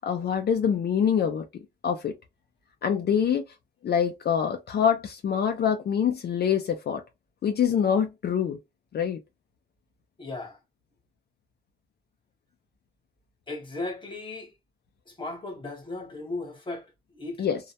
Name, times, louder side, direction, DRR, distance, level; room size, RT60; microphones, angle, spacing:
voice 1, 0.0-1.5 1.8-2.2 2.8-3.4 3.8-7.0 7.4-8.6 8.9-9.2 17.4-17.6, left 8 dB, 65° left, 0.4 m, -25 dB
voice 2, 10.2-10.6 13.5-14.5 15.1-17.4, left 2 dB, 30° left, 0.9 m, -36 dB
2.3 x 2.1 x 2.7 m
wide cardioid pair, 140°, 18 cm